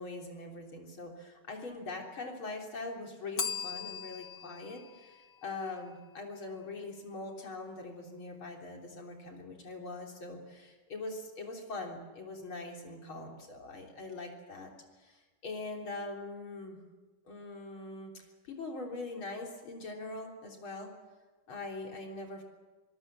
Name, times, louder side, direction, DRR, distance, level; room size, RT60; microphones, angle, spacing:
voice 1, 0.0-14.7 15.0-16.8 17.2-20.9 21.5-22.4, left 2 dB, 75° left, 1 dB, 4.3 m, -42 dB
Bell, 3.4-6.2, left 6 dB, 60° left, 1.8 m, -40 dB
24.0 x 19.5 x 7.6 m, 1.2 s
omnidirectional pair, 2.3 m